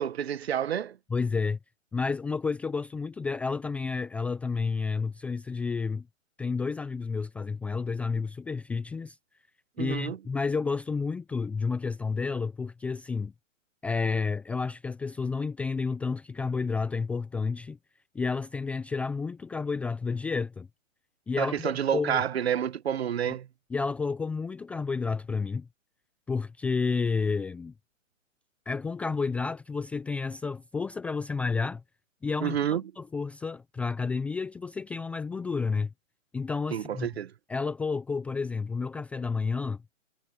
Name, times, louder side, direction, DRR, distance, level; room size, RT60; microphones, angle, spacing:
voice 1, 0.0-1.0 9.8-10.2 21.4-23.5 32.4-32.8 36.7-37.3, right 9 dB, 50° right, 1.8 m, -29 dB
voice 2, 1.1-1.6 1.9-6.0 6.4-9.2 9.8-13.3 13.8-17.8 18.1-20.7 21.3-22.2 23.7-25.7 26.3-27.7 28.7-31.8 32.2-35.9 36.3-37.1 37.5-39.8, left 4 dB, 5° left, 0.7 m, -30 dB
figure-of-eight pair, 140°, 39 cm